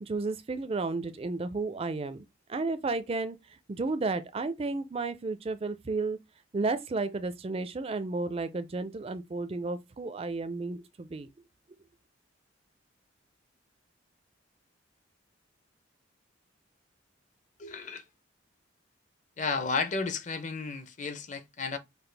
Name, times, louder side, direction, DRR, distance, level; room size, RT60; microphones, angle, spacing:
voice 1, 0.0-2.2 2.5-3.4 3.7-6.2 6.5-11.3, right 3 dB, 30° right, 0.4 m, -32 dB
voice 2, 17.6-18.0 19.4-21.8, left 4 dB, 40° left, 0.6 m, -33 dB
5.9 x 2.4 x 3.3 m
head